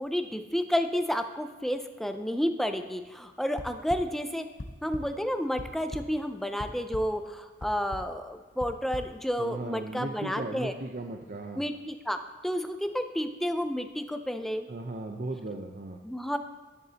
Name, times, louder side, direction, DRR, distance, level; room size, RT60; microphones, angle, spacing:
voice 1, 0.0-4.5 4.8-10.7 11.5-12.2 12.4-14.7 16.0-16.4, equal, ahead, 7 dB, 0.4 m, -31 dB
sound 1, 3.6-4.0 4.6-5.0 5.4-6.0 6.6-7.0 7.6-8.0 8.6-9.0, left 2 dB, 45° left, 0.7 m, -38 dB
voice 2, 9.4-11.6 14.7-16.0, right 2 dB, 45° right, 2 dB, 0.7 m, -37 dB
11.0 x 9.7 x 2.8 m, 1.4 s
head